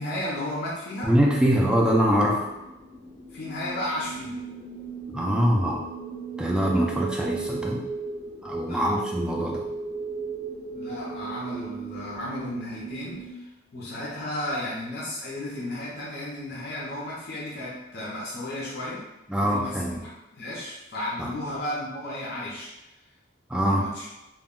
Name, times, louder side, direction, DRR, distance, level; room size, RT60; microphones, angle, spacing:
voice 1, 0.0-1.1 3.3-4.4 8.7-9.0 10.7-19.0 19.5-20.0 20.3-22.8 23.6-24.1, left 1 dB, 55° left, -6 dB, 0.6 m, -34 dB
voice 2, 1.0-2.5 5.1-5.9 6.4-7.9 8.4-9.7 19.3-20.0 21.2-21.3 23.5-23.9, equal, 5° right, -2 dB, 0.3 m, -23 dB
sound 1, 1.9-13.3, right 4 dB, 75° right, 0.9 m, -36 dB
2.2 x 2.1 x 3.5 m, 0.97 s
head